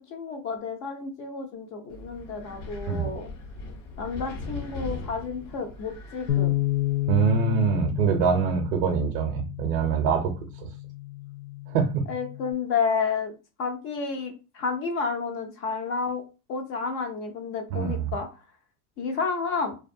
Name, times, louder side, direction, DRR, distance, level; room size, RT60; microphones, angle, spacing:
voice 1, 0.0-3.3 4.0-6.6 12.1-13.3 13.6-16.2 16.5-18.3 19.0-19.8, left 5 dB, 30° left, 5 dB, 0.4 m, -30 dB
Wind, 1.9-7.2, left 2 dB, 65° left, 1.0 m, -40 dB
Bass guitar, 6.3-12.5, left 16 dB, 80° left, 0.7 m, -30 dB
voice 2, 7.1-10.4 11.7-12.0 17.7-18.1, right 6 dB, 40° right, 2 dB, 0.5 m, -24 dB
2.4 x 2.2 x 2.6 m, 0.31 s
supercardioid pair, 140°, 47 cm